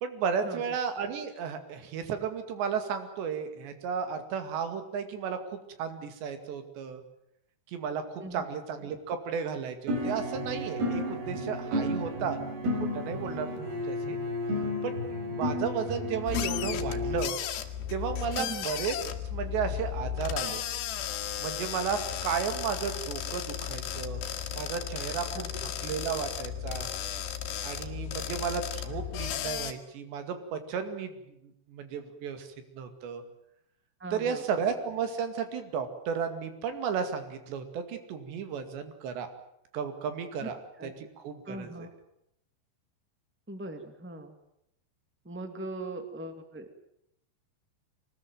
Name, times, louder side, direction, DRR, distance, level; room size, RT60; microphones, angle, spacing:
voice 1, 0.0-7.0 7.7-12.4 12.9-13.5 13.9-14.2 14.8-17.4 17.9-18.9 19.3-20.6 21.4-24.2 24.5-26.9 27.6-31.2 31.4-33.2 34.1-39.3 39.7-40.6 40.8-41.9, right 6 dB, 85° right, 8 dB, 4.5 m, -34 dB
sound 1, 9.9-17.3, left 1 dB, 65° right, 5.9 m, -32 dB
sound 2, 16.3-29.7, left 10 dB, 80° left, 3.7 m, -35 dB
voice 2, 25.1-25.9 34.0-34.4 40.4-40.5 40.8-40.9 41.4-41.9 43.5-44.3 45.2-46.8, right 1 dB, 20° right, 7 dB, 0.3 m, -40 dB
24.5 x 19.5 x 9.3 m, 0.79 s
omnidirectional pair, 4.9 m